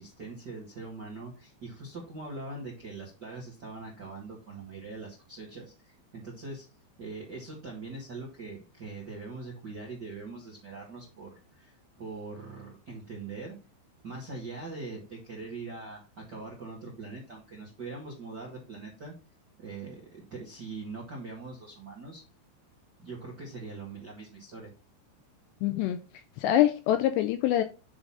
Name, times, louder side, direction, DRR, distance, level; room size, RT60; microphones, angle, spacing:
voice 1, 0.0-6.6 7.0-13.5 14.0-19.1 19.6-22.2 23.0-24.7, right 3 dB, 50° right, 1.2 m, -42 dB
voice 2, 25.6-26.0 26.4-27.6, left 12 dB, 80° left, 2.5 m, -24 dB
9.7 x 3.9 x 4.2 m
omnidirectional pair, 5.4 m